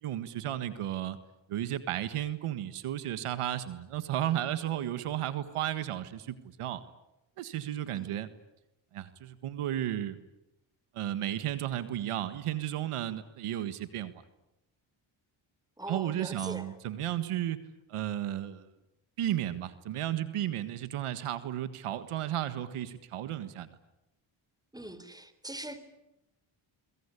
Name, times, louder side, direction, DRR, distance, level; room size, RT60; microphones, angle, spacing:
voice 1, 0.0-1.2 1.5-6.8 7.4-8.3 8.9-10.2 10.9-14.1 15.9-17.6 17.9-18.7 19.2-23.7, right 12 dB, 85° right, 12 dB, 1.7 m, -33 dB
voice 2, 15.8-16.8 24.7-25.8, right 1 dB, 5° right, 12 dB, 3.7 m, -42 dB
23.5 x 23.5 x 10.0 m, 0.93 s
cardioid pair, 75°, 50 cm